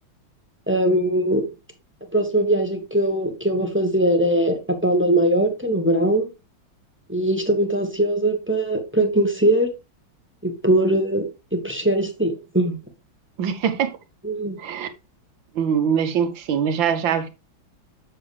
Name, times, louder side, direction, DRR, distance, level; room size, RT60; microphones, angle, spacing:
voice 1, 0.7-1.4 2.1-6.3 7.1-9.7 10.4-12.7 14.2-14.6, right 1 dB, 5° right, 1.1 m, -21 dB
voice 2, 13.4-14.0 14.6-14.9 15.6-17.3, right 7 dB, 70° right, 1.7 m, -23 dB
7.6 x 6.9 x 3.3 m
omnidirectional pair, 2.2 m